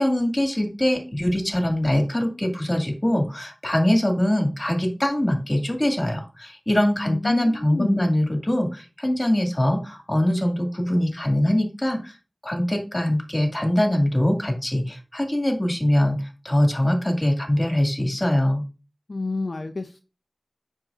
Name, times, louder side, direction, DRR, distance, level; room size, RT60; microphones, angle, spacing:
voice 1, 0.0-12.2 12.4-16.2 16.4-18.6, left 1 dB, 30° left, 3 dB, 2.2 m, -23 dB
voice 2, 7.0-8.0 19.1-20.0, left 3 dB, 70° left, 6 dB, 0.6 m, -28 dB
7.5 x 6.5 x 2.5 m, 0.32 s
wide cardioid pair, 50°, 0 cm